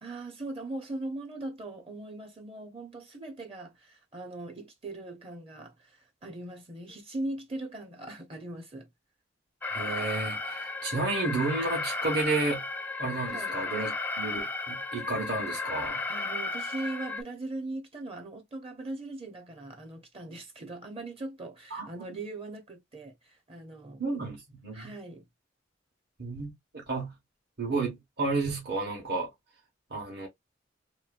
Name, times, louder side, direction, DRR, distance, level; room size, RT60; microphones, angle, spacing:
voice 1, 0.0-8.9 13.2-13.6 16.1-24.0 24.7-25.3, right 2 dB, 30° right, 0.7 m, -40 dB
Alarm, 9.6-17.2, left 3 dB, 10° left, 0.4 m, -34 dB
voice 2, 9.7-12.7 13.0-16.0 21.7-22.2 24.0-24.9 26.2-27.1 27.6-29.3 29.9-30.3, right 3 dB, 60° right, 1.3 m, -32 dB
3.0 x 3.0 x 2.5 m
head